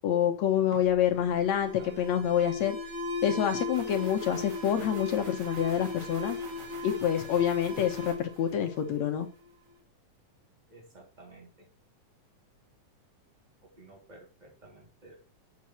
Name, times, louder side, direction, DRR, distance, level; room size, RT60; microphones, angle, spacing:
voice 1, 0.0-1.7 2.0-2.8 3.2-6.4 6.8-9.3, left 10 dB, 65° left, 6 dB, 2.1 m, -27 dB
Alarm, 0.7-9.3, left 3 dB, 35° right, 1.3 m, -37 dB
voice 2, 1.0-2.2 10.7-11.7 13.6-15.2, right 2 dB, 10° right, -1 dB, 3.6 m, -54 dB
8.5 x 6.8 x 4.3 m, 0.31 s
omnidirectional pair, 3.7 m